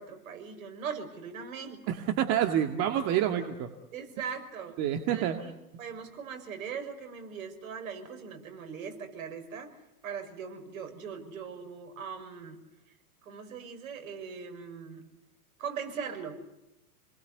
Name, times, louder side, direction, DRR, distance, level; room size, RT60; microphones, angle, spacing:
voice 1, 0.0-1.9 2.9-3.2 3.9-4.8 5.1-5.5 5.8-9.8 10.0-12.6 13.2-15.0 15.6-16.4, right 6 dB, 60° right, 6 dB, 6.3 m, -40 dB
voice 2, 1.9-3.7 4.8-5.4, right 10 dB, 35° right, 6 dB, 2.1 m, -28 dB
29.5 x 21.5 x 8.3 m, 0.96 s
hypercardioid pair, 115°, 45 cm